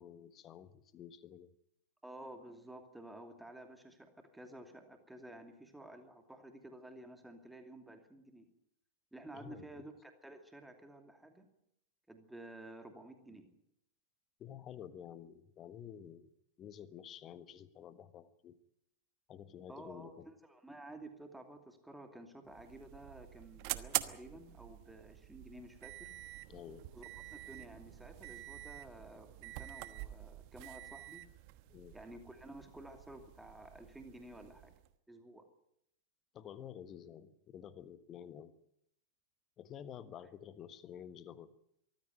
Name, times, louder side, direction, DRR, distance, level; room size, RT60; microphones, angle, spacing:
voice 1, 0.0-1.5 9.3-9.7 14.4-16.3 16.6-18.6 19.3-20.3 26.5-26.9 31.7-32.0 36.3-38.5 39.6-41.5, left 9 dB, 30° left, 14 dB, 1.4 m, -50 dB
voice 2, 2.0-8.4 9.1-11.5 12.1-13.5 19.7-26.1 26.9-31.2 31.9-34.7 35.1-35.4 40.2-40.3, right 1 dB, 5° right, 6 dB, 2.7 m, -52 dB
sound 1, 22.4-34.9, right 19 dB, 45° right, 1.1 m, -46 dB
23.5 x 15.0 x 9.1 m, 0.77 s
figure-of-eight pair, 90°, 0 cm